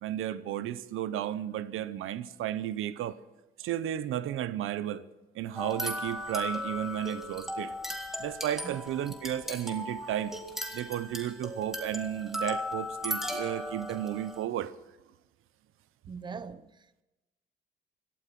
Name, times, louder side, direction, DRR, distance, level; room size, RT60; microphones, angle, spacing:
voice 1, 0.0-3.2 3.6-5.0 5.3-7.7 8.2-10.4 10.7-14.7, right 11 dB, 85° right, 0.8 m, -33 dB
sound 1, 5.6-14.4, left 1 dB, ahead, 2.0 m, -37 dB
voice 2, 16.1-17.0, right 5 dB, 20° right, 0.6 m, -42 dB
17.0 x 13.0 x 5.9 m
cardioid pair, 125°, 21 cm